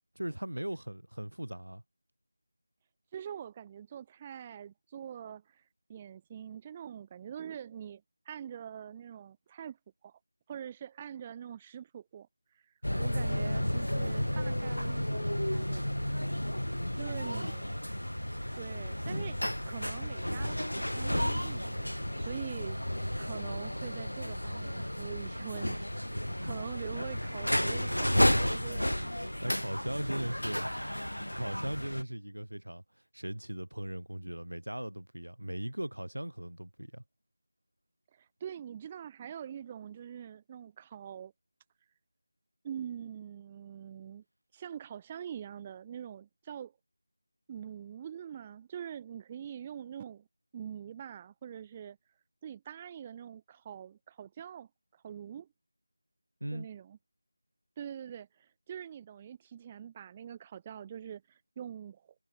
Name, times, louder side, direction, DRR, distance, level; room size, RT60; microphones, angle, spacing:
voice 1, 0.1-1.8 17.0-17.5 26.7-26.8 28.6-28.8 29.1-30.7 31.3-32.8 33.1-37.0 56.4-56.7, right 1 dB, 80° right, 1.0 m, -38 dB
voice 2, 3.1-5.6 5.9-9.8 10.0-10.2 10.5-12.3 12.5-16.3 17.0-17.6 18.5-19.4 19.6-25.9 26.4-29.1 38.1-41.3 42.6-44.2 44.5-46.8 47.5-50.3 50.5-52.0 52.4-55.5 56.5-57.0 57.8-62.1, right 9 dB, 15° right, 0.7 m, -44 dB
sound 1, 12.8-32.0, equal, 90° left, 0.3 m, -32 dB
figure-of-eight pair, 165°, 0 cm